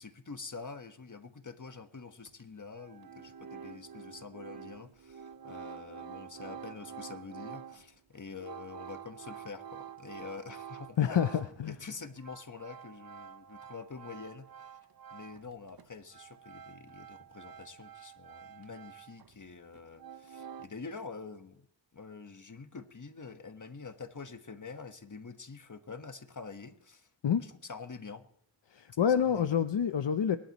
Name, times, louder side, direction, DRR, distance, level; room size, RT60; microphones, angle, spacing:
voice 1, 0.0-11.2 11.7-14.8 15.1-21.6 21.9-27.1 27.4-28.2 29.2-29.6, left 4 dB, 45° left, 7 dB, 1.3 m, -46 dB
sound 1, 2.3-2.4 2.7-11.7 12.0-15.5 15.8-19.4 19.7-20.7, right 8 dB, 55° right, 0.8 m, -48 dB
voice 2, 11.0-11.8 27.2-27.4 28.7-30.4, left 8 dB, 75° left, 9 dB, 0.7 m, -27 dB
22.0 x 11.5 x 3.0 m, 0.68 s
wide cardioid pair, 85°, 44 cm